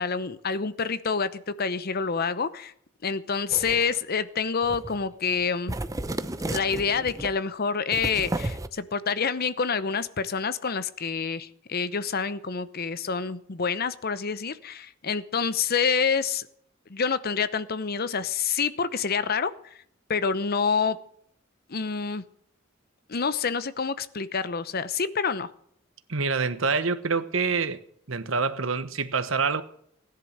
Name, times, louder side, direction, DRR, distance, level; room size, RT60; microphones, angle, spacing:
voice 1, 0.0-2.7 3.0-5.7 6.5-16.5 16.9-19.5 20.1-21.0 21.7-22.2 23.1-25.5, left 5 dB, 50° left, 0.8 m, -27 dB
sound 1, 3.5-4.0 4.6-5.0 5.3-5.4 5.7-7.3 7.9-8.7, right 1 dB, 15° right, 0.7 m, -33 dB
voice 2, 26.1-27.8 28.1-29.6, right 4 dB, 85° right, 1.2 m, -26 dB
16.5 x 10.5 x 6.6 m
head